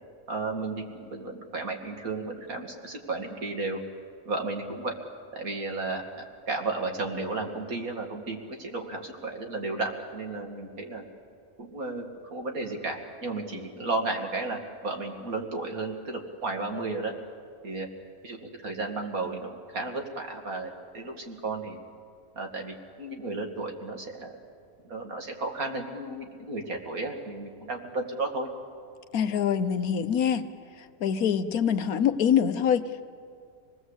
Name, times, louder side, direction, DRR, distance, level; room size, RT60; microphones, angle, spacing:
voice 1, 0.3-3.8 4.3-4.9 5.3-11.0 11.6-12.0 12.3-17.1 17.6-17.9 18.2-21.8 22.4-24.3 24.8-28.5, right 3 dB, 75° right, 2 dB, 2.7 m, -33 dB
voice 2, 29.1-30.5 31.0-32.8, left 8 dB, 80° left, 10 dB, 1.4 m, -24 dB
27.0 x 19.0 x 8.1 m, 2.3 s
omnidirectional pair, 1.5 m